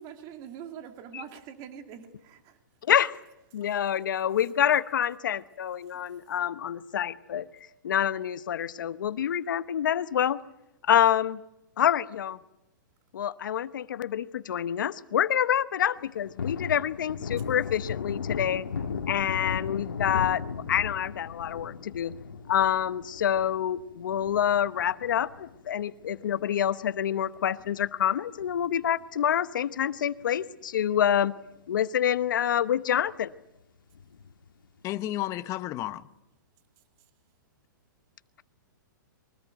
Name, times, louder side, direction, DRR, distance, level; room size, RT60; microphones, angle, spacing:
voice 1, 0.0-2.6 5.9-6.0, right 8 dB, 35° right, 2.4 m, -44 dB
voice 2, 2.9-3.2 3.5-7.5 7.8-10.4 10.8-11.4 11.8-12.4 13.1-18.6 19.1-20.4 20.7-22.2 22.5-31.3 31.7-33.3, left 10 dB, 70° left, 0.9 m, -27 dB
Thunder, 16.0-26.7 27.1-27.2 27.5-29.0 29.3-29.5 29.8-30.6 31.0-31.1 31.5-31.6 33.9-34.5, left 6 dB, 90° left, 1.6 m, -37 dB
voice 3, 34.8-36.0, left 14 dB, 30° left, 0.9 m, -32 dB
23.5 x 18.5 x 9.2 m
hypercardioid pair, 135°, 11 cm